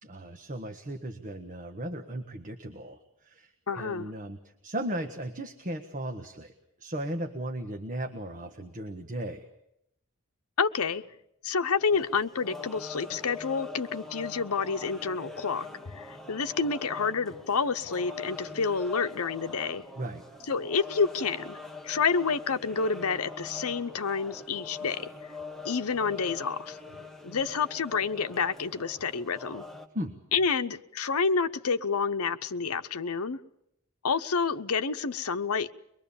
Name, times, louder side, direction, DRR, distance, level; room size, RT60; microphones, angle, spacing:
voice 1, 0.0-6.5 6.8-9.5 20.0-20.2 29.9-30.1, right 1 dB, 35° right, 1.4 m, -36 dB
voice 2, 3.7-4.1 10.6-11.0 11.4-19.8 20.5-21.6 21.8-25.3 25.6-26.8 27.2-29.6 30.3-33.4 34.0-35.7, left 5 dB, 80° left, 0.9 m, -29 dB
sound 1, 11.8-29.9, left 3 dB, ahead, 1.5 m, -43 dB
23.5 x 22.0 x 7.1 m
head